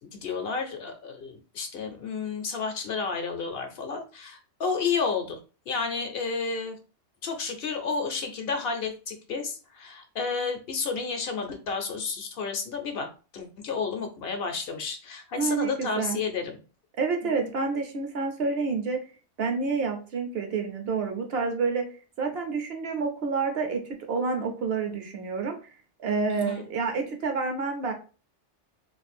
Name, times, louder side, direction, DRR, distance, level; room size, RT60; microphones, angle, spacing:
voice 1, 0.1-5.4 5.7-6.8 7.2-13.1 13.3-16.6 17.4-17.5 26.3-26.7, left 5 dB, 60° left, 5 dB, 0.7 m, -31 dB
voice 2, 15.4-16.2 17.0-19.0 19.4-21.9 22.2-23.8 24.1-25.6 26.0-27.9, right 4 dB, 65° right, 4 dB, 0.9 m, -28 dB
2.6 x 2.4 x 4.1 m, 0.35 s
omnidirectional pair, 1.2 m